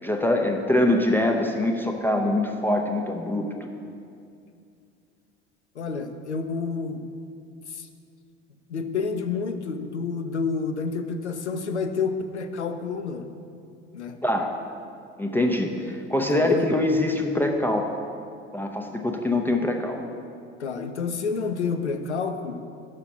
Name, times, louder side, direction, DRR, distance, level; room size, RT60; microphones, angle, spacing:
voice 1, 0.0-3.7 14.2-14.5 15.2-18.0 18.5-20.0, left 1 dB, 5° left, 2 dB, 0.4 m, -24 dB
voice 2, 5.8-7.0 7.7-7.9 8.7-13.3 13.9-14.2 16.3-16.7 20.6-22.6, left 5 dB, 85° left, 8 dB, 0.5 m, -29 dB
6.0 x 5.7 x 5.8 m, 2.4 s
figure-of-eight pair, 65°, 33 cm